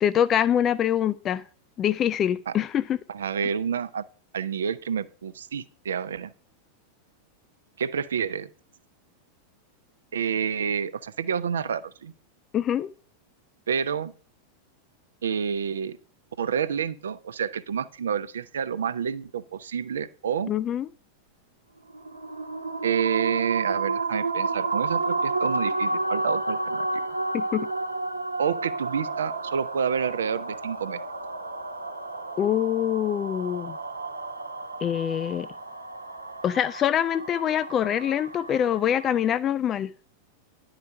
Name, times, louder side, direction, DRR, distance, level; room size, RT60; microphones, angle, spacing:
voice 1, 0.0-1.4 1.8-3.0 12.5-12.9 20.5-20.9 27.3-27.7 32.4-33.8 34.8-35.5 36.4-39.9, left 10 dB, 30° left, 0.4 m, -24 dB
voice 2, 3.1-4.0 4.3-6.3 7.8-8.5 10.1-12.1 13.7-14.1 15.2-16.0 16.4-20.5 22.8-27.1 28.4-31.0, right 7 dB, 65° right, 0.6 m, -29 dB
sound 1, 21.9-39.2, right 3 dB, 80° right, 1.0 m, -31 dB
10.5 x 4.8 x 6.6 m
figure-of-eight pair, 90°, 0 cm